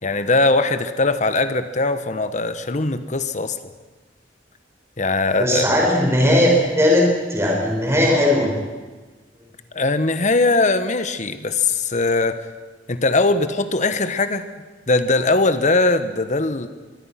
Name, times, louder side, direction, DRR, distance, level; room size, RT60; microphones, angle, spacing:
voice 1, 0.0-3.6 5.0-5.7 9.7-12.5 12.9-14.5 14.9-16.7, left 3 dB, 45° left, 11 dB, 1.3 m, -20 dB
voice 2, 5.4-8.5, left 1 dB, 15° right, -1 dB, 5.5 m, -17 dB
24.0 x 23.0 x 6.0 m, 1.3 s
head